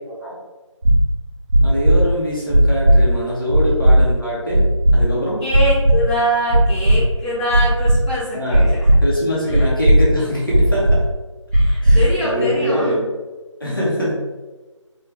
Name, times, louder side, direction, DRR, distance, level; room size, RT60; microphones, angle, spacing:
voice 1, 0.1-0.4 1.6-5.4 8.3-8.7 9.0-11.0 11.8-13.1 13.6-14.1, equal, 45° left, -6 dB, 0.9 m, -23 dB
sound 1, 0.8-0.9 1.5-1.9 2.5-3.0 3.5-3.9 4.5-4.9 5.5-5.9 6.5-7.0 7.5-8.0 8.5-9.0 9.5-10.0 10.5-11.0 11.5-12.0, right 1 dB, 60° right, 0.7 m, -13 dB
voice 2, 5.4-8.9 9.5-9.6 11.5-12.9, equal, 5° right, -21 dB, 1.1 m, -23 dB
3.4 x 2.4 x 3.2 m, 1.2 s
figure-of-eight pair, 175°, 17 cm